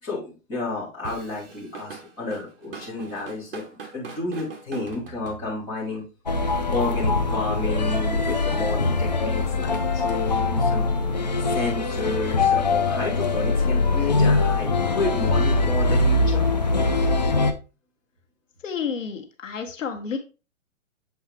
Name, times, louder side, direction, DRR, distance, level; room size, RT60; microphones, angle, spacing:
voice 1, 0.0-3.6 3.9-6.0 6.7-10.9 11.4-16.5, left 3 dB, 10° left, -7 dB, 1.5 m, -31 dB
Drum kit / Drum, 1.0-5.9, right 5 dB, 45° right, 1.6 m, -41 dB
sound 1, 6.3-17.5, left 3 dB, 35° left, 0.4 m, -22 dB
voice 2, 18.6-20.2, left 6 dB, 75° left, 5 dB, 1.4 m, -30 dB
7.3 x 4.3 x 3.4 m, 0.31 s
hypercardioid pair, 180°, 39 cm